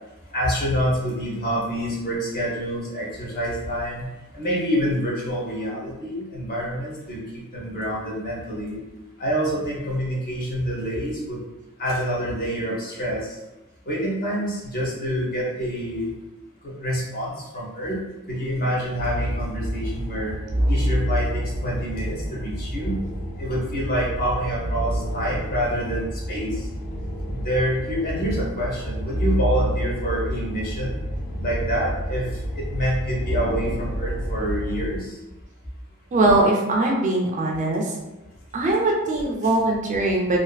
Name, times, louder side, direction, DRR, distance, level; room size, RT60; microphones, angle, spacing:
voice 1, 0.3-4.1 4.3-7.2 7.5-8.8 9.2-11.4 11.8-13.3 13.9-16.1 16.6-18.0 18.3-20.3 20.7-23.0 23.4-26.5 27.3-31.0 31.4-32.2 32.5-35.1, equal, 40° left, -5 dB, 0.8 m, -27 dB
sound 1, 19.0-35.0, equal, 80° left, 1.1 m, -28 dB
voice 2, 36.1-37.9 38.5-40.4, right 2 dB, 35° right, -1 dB, 0.3 m, -21 dB
2.5 x 2.4 x 2.2 m, 1.0 s
head